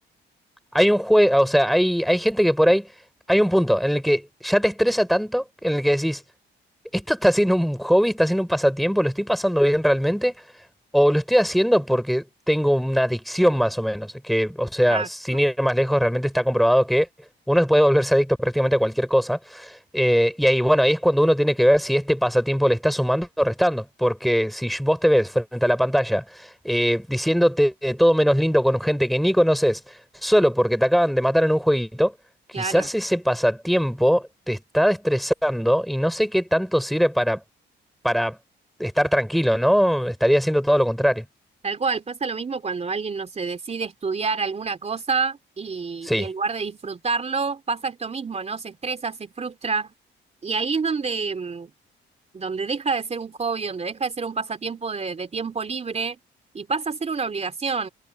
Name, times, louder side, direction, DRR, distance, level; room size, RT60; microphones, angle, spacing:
voice 1, 0.7-2.9 3.3-6.2 6.9-10.3 10.9-17.1 17.5-29.8 30.2-32.1 32.5-37.4 38.0-38.4 38.8-41.2 46.0-46.3, equal, ahead, 5.2 m, -20 dB
voice 2, 14.9-15.4 32.5-32.9 41.6-49.9 50.4-51.7 52.3-56.2 56.5-57.9, right 4 dB, 35° right, 3.4 m, -28 dB
cardioid pair, 90°, 20 cm